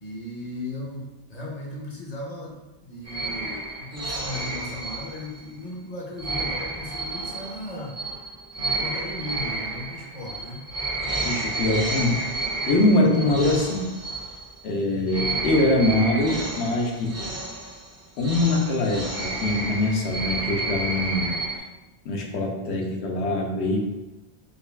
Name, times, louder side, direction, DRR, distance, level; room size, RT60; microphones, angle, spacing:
voice 1, 0.0-8.0 8.6-10.7, left 1 dB, 45° left, -2 dB, 0.6 m, -37 dB
sound 1, 3.1-5.5 6.2-14.8 15.1-21.6, right 2 dB, 25° right, 0.4 m, -31 dB
voice 2, 11.2-12.2 12.7-13.9 14.6-17.3 18.2-21.3 22.1-23.8, left 2 dB, 80° left, 1 dB, 0.9 m, -23 dB
5.1 x 2.3 x 2.2 m, 1.1 s
omnidirectional pair, 1.1 m